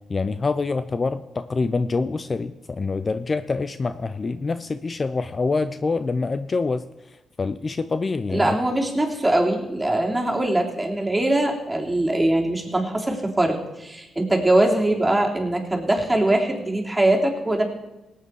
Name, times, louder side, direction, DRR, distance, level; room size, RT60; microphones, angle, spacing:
voice 1, 0.1-8.5, left 3 dB, 40° left, 12 dB, 0.6 m, -26 dB
voice 2, 8.3-17.6, right 1 dB, 15° right, 0 dB, 3.3 m, -22 dB
18.5 x 8.6 x 4.8 m, 0.99 s
supercardioid pair, 50°, 0 cm